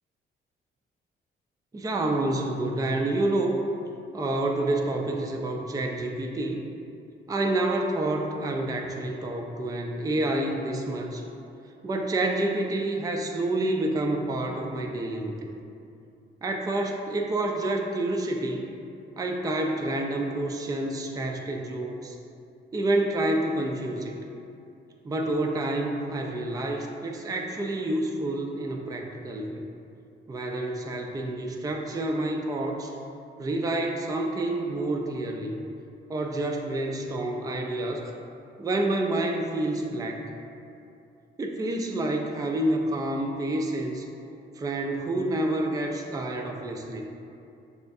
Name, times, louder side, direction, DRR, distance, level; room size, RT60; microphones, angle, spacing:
voice 1, 1.7-3.6 4.1-6.6 7.3-11.2 11.8-15.5 16.4-18.7 19.2-22.2 22.7-24.1 25.0-29.6 30.3-32.9 33.4-35.5 36.1-38.1 38.6-40.3 41.4-44.0 44.6-47.0, right 1 dB, 15° right, 1 dB, 0.4 m, -28 dB
6.1 x 2.2 x 2.6 m, 2.6 s
cardioid pair, 70°, 21 cm